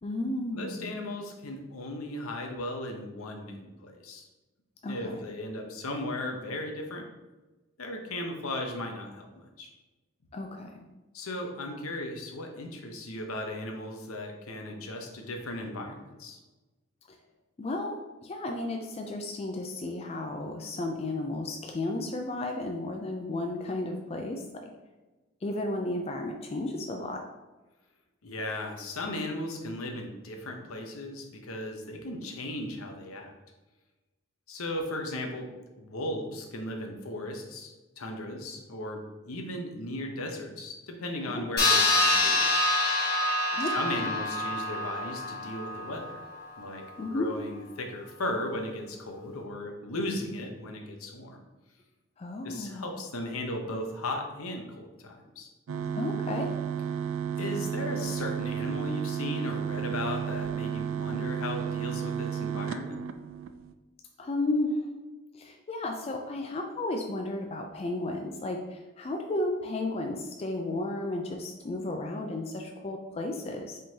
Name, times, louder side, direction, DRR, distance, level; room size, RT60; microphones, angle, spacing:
voice 1, 0.0-1.0 4.8-5.2 10.3-10.8 17.6-24.7 25.4-27.3 41.2-41.4 43.5-44.1 47.0-47.3 52.2-52.9 55.9-56.6 64.2-64.9 65.3-73.8, left 2 dB, 30° left, 3 dB, 0.3 m, -33 dB
voice 2, 0.5-4.3 4.9-7.0 7.8-9.7 11.1-16.4 28.2-33.3 34.5-35.5 35.8-42.4 43.6-46.2 46.6-46.8 47.1-51.4 52.4-55.5 57.4-63.0, left 1 dB, 80° left, 3 dB, 0.8 m, -36 dB
sound 1, 41.6-46.4, left 2 dB, 45° left, 1.4 m, -26 dB
sound 2, 55.7-63.7, right 8 dB, 65° right, 0.3 m, -33 dB
5.2 x 3.7 x 2.7 m, 1.1 s
head